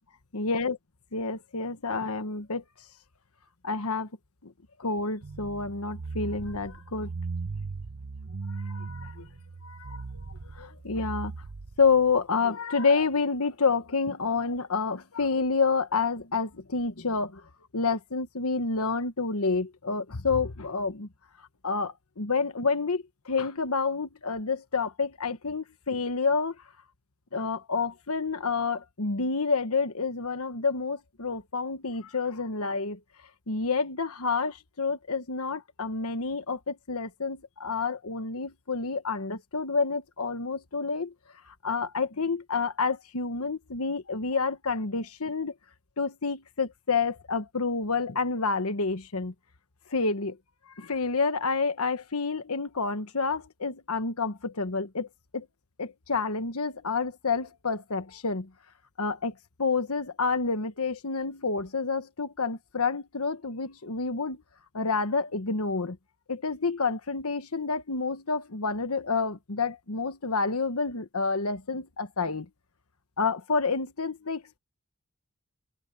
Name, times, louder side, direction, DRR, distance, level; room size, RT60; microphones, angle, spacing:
voice 1, 0.3-0.8 1.1-2.6 3.6-4.1 4.4-4.5 4.8-7.1 8.6-9.2 9.6-10.0 10.5-11.3 11.8-17.4 17.7-21.1 21.6-26.6 27.3-33.0 33.5-41.1 41.5-45.5 46.0-49.3 49.9-50.4 50.8-55.1 55.3-55.5 55.8-58.5 59.0-59.3 59.6-64.4 64.7-66.0 66.3-72.5 73.2-74.6, left 4 dB, 80° left, 1.3 m, -29 dB
sound 1, 5.2-12.1, right 4 dB, 65° right, 0.7 m, -38 dB
head